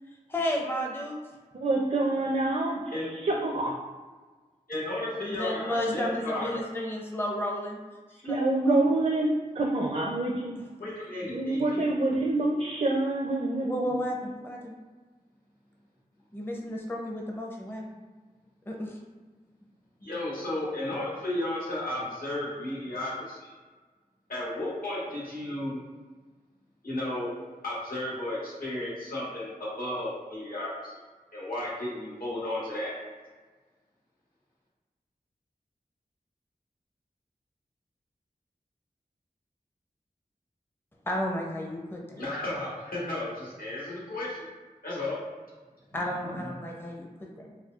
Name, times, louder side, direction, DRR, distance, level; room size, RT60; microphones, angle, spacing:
voice 1, 0.3-1.1 5.2-7.8 8.2-9.0 13.6-14.7 16.3-17.8 18.7-18.9 41.1-42.2 45.9-47.5, left 1 dB, 15° left, -1 dB, 0.5 m, -32 dB
voice 2, 1.6-2.8 3.1-3.8 8.2-10.6 11.3-14.1, right 2 dB, 50° right, -1 dB, 0.4 m, -26 dB
voice 3, 4.7-6.6 10.8-11.9 20.0-23.5 24.3-25.8 26.8-27.3 27.6-30.9 31.3-33.0 42.2-44.5 44.8-45.2 45.9-46.5, left 1 dB, 75° left, -7 dB, 1.3 m, -34 dB
4.2 x 2.2 x 2.3 m, 1.4 s
wide cardioid pair, 50°, 15 cm